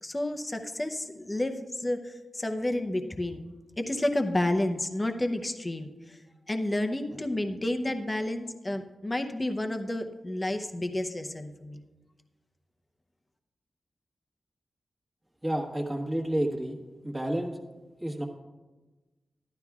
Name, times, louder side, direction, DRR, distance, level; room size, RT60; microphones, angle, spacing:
voice 1, 0.0-3.5 3.8-6.2 6.5-11.8, left 1 dB, 15° left, 5 dB, 0.7 m, -30 dB
voice 2, 15.4-16.8 17.0-17.6 18.0-18.2, right 1 dB, 15° right, -1 dB, 1.3 m, -30 dB
14.5 x 11.5 x 2.4 m, 1.2 s
wide cardioid pair, 135°, 0 cm